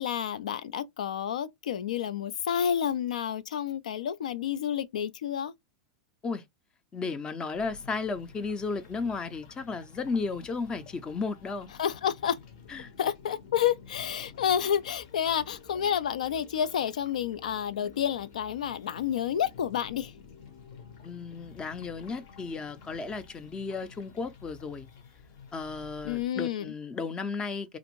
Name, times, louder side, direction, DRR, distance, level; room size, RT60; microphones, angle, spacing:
voice 1, 0.0-5.5 11.8-12.4 13.0-20.1 26.0-26.7, left 9 dB, 80° left, 0.4 m, -30 dB
voice 2, 6.9-11.7 12.7-12.9 21.0-24.9 25.5-27.8, left 4 dB, 20° left, 0.5 m, -34 dB
sound 1, 7.5-26.3, left 6 dB, 60° left, 0.8 m, -51 dB
2.5 x 2.5 x 3.0 m
hypercardioid pair, 110°, 4 cm